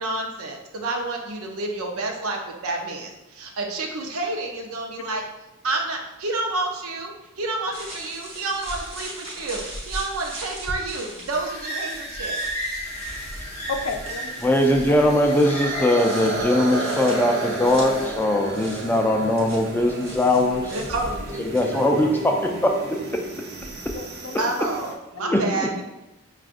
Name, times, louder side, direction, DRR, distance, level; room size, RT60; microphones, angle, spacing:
voice 1, 0.0-5.2 5.6-12.4 20.7-21.9 22.3-22.4 24.4-25.8, right 2 dB, 90° right, 2 dB, 0.7 m, -29 dB
sound 1, 7.7-22.5 23.6-24.3, right 1 dB, 30° right, 1.0 m, -39 dB
sound 2, 11.3-18.1, right 1 dB, 30° left, 1.1 m, -34 dB
sound 3, 12.9-24.9, right 2 dB, 50° right, 0.5 m, -33 dB
voice 2, 13.7-15.5 23.9-24.5 25.2-25.3, left 4 dB, 85° left, 5 dB, 0.5 m, -33 dB
voice 3, 14.4-20.7 21.4-22.8 23.1-23.2 25.3-25.7, left 1 dB, 10° left, 2 dB, 0.3 m, -21 dB
6.0 x 2.4 x 2.5 m, 0.96 s
head